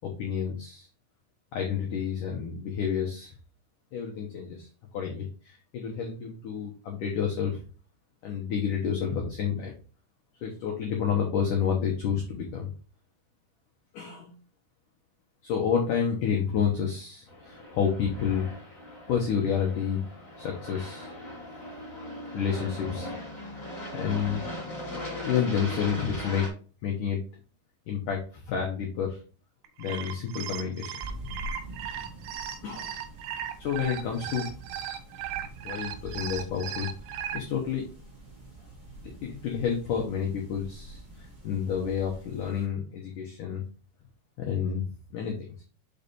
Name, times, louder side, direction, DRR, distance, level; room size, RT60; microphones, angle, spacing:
voice 1, 0.0-0.9 1.5-3.3 3.9-4.7 4.9-7.6 8.2-9.7 10.4-12.7 13.9-14.3 15.4-18.4 19.1-20.0 20.4-21.1 22.3-23.1 23.9-24.4 25.2-26.5 26.8-27.2 27.9-29.2 29.8-30.9 32.6-32.9 33.6-34.5 35.6-36.9 37.3-37.8 39.2-43.6 44.4-44.8 45.1-45.5, left 7 dB, 75° left, 0 dB, 1.9 m, -29 dB
Aircraft, 17.3-26.5, left 1 dB, 15° left, 2.0 m, -39 dB
sound 1, 29.6-37.4, right 10 dB, 80° right, 2.7 m, -36 dB
sound 2, 31.0-42.7, right 1 dB, 25° right, 0.8 m, -45 dB
5.8 x 5.3 x 4.3 m, 0.36 s
omnidirectional pair, 5.3 m